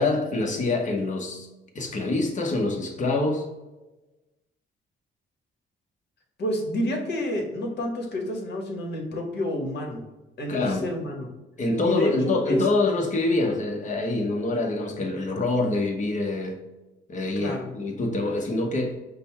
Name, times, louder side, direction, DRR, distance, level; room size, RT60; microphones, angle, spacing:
voice 1, 0.0-1.5 1.7-3.5 10.5-10.9 11.6-16.6 17.1-19.0, left 2 dB, 40° left, 1 dB, 1.0 m, -25 dB
voice 2, 6.4-10.0 10.4-11.3 11.8-12.7 17.4-17.7, left 1 dB, 60° left, 1 dB, 1.3 m, -29 dB
5.2 x 2.2 x 4.3 m, 1.1 s
cardioid pair, 90°, 20 cm